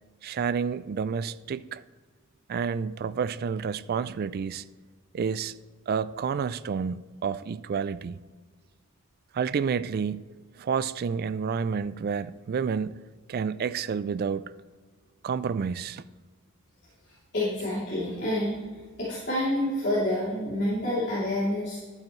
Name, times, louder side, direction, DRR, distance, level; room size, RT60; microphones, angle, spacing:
voice 1, 0.2-1.8 2.5-4.6 5.1-5.5 5.9-8.2 9.3-13.0 13.3-14.5 15.2-16.0, right 6 dB, 45° right, 0.3 m, -30 dB
voice 2, 17.3-18.6 19.0-21.8, left 1 dB, 50° left, 3.0 m, -28 dB
12.0 x 8.8 x 3.2 m
head